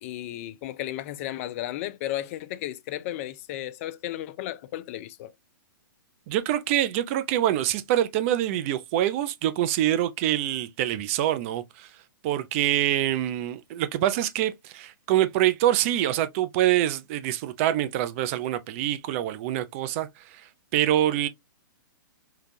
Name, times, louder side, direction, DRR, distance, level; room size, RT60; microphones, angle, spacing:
voice 1, 0.0-5.3, left 13 dB, 40° left, 0.4 m, -34 dB
voice 2, 6.3-11.9 12.2-21.3, right 12 dB, 40° right, 0.5 m, -25 dB
3.7 x 2.3 x 2.7 m
hypercardioid pair, 140°, 12 cm